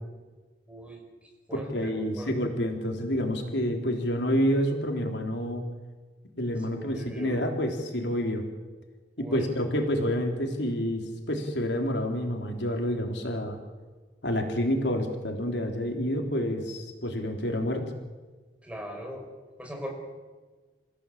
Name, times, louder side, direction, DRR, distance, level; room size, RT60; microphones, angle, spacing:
voice 1, 0.7-1.0 1.5-2.5 6.7-7.4 9.2-9.5 18.6-19.3 19.6-19.9, equal, 5° right, 2 dB, 5.6 m, -40 dB
voice 2, 1.5-5.6 6.4-8.4 9.2-11.0 11.3-13.6 14.2-17.8, equal, 80° left, 3 dB, 3.6 m, -28 dB
28.5 x 16.0 x 8.6 m, 1.4 s
head